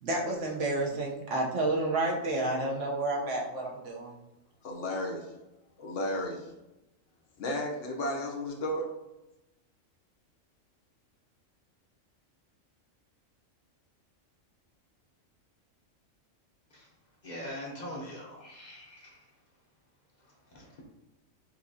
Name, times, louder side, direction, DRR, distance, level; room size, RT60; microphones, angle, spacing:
voice 1, 0.0-4.2, right 2 dB, 65° right, -2 dB, 1.2 m, -30 dB
voice 2, 4.6-5.3 5.8-6.5 7.4-8.9, left 1 dB, 70° left, 0 dB, 1.1 m, -33 dB
voice 3, 17.2-19.2 20.5-20.7, equal, 40° left, -1 dB, 0.8 m, -41 dB
5.5 x 2.8 x 2.7 m, 0.95 s
omnidirectional pair, 1.4 m